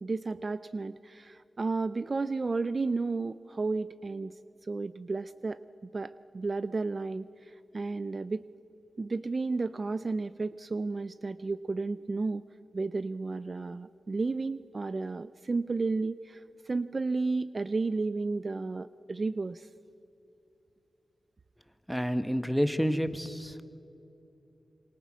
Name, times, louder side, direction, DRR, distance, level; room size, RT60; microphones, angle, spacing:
voice 1, 0.0-4.3 4.6-8.4 9.0-12.4 12.7-19.7, right 3 dB, 40° right, 15 dB, 0.5 m, -32 dB
voice 2, 21.9-23.6, equal, ahead, 10 dB, 1.2 m, -29 dB
27.0 x 24.0 x 6.1 m, 2.9 s
wide cardioid pair, 85°, 0 cm